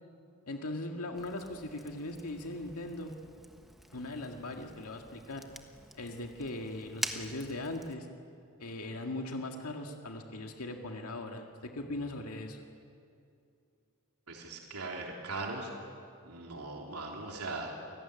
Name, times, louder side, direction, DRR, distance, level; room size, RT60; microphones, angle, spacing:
voice 1, 0.5-3.2 3.9-5.4 5.9-8.1 8.6-12.6, left 2 dB, 80° left, 3 dB, 1.9 m, -39 dB
Fire, 1.1-7.9, equal, ahead, 1.4 m, -46 dB
voice 2, 14.3-15.7 16.2-17.7, right 3 dB, 85° right, 0 dB, 3.4 m, -39 dB
28.5 x 19.0 x 9.9 m, 2.5 s
head